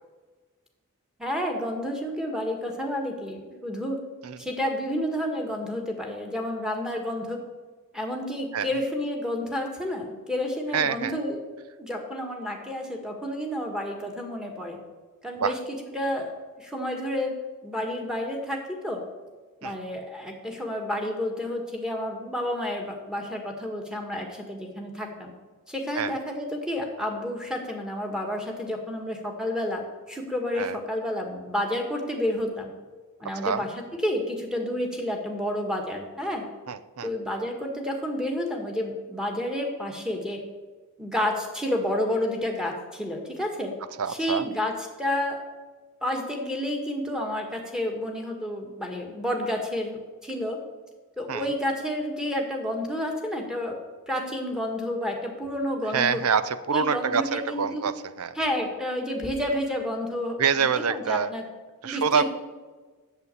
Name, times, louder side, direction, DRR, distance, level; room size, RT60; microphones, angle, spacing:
voice 1, 1.2-4.0 4.4-7.4 7.9-11.4 11.8-14.8 15.2-15.6 15.9-16.3 16.6-19.0 19.6-25.3 25.7-29.8 30.1-32.7 33.2-33.7 34.0-36.4 37.0-40.4 41.0-43.7 44.1-44.7 45.0-45.4 46.0-50.6 51.2-53.8 54.1-56.2 56.7-57.8 58.4-60.4 60.9-61.4 61.8-62.2, left 1 dB, 5° right, 1 dB, 1.6 m, -30 dB
voice 2, 10.7-11.1 15.4-15.5 19.6-19.8 26.0-26.2 30.5-30.8 33.4-33.7 36.7-37.1 44.0-44.5 51.3-51.5 55.9-58.4 60.4-61.3 61.8-62.2, right 6 dB, 90° right, 14 dB, 0.6 m, -26 dB
8.3 x 7.3 x 8.1 m, 1.3 s
head